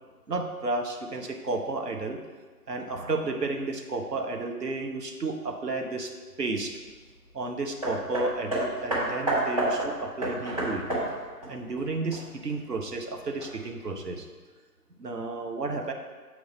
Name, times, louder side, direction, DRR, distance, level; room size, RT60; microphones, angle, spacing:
voice 1, 0.3-2.2 2.7-6.1 6.4-6.7 7.3-10.8 11.5-14.3 15.0-15.9, right 3 dB, 75° right, 3 dB, 1.1 m, -32 dB
Hammer, 7.8-12.6 13.4-13.5, right 1 dB, 25° right, 1.5 m, -30 dB
7.1 x 4.7 x 4.2 m, 1.4 s
figure-of-eight pair, 155°, 49 cm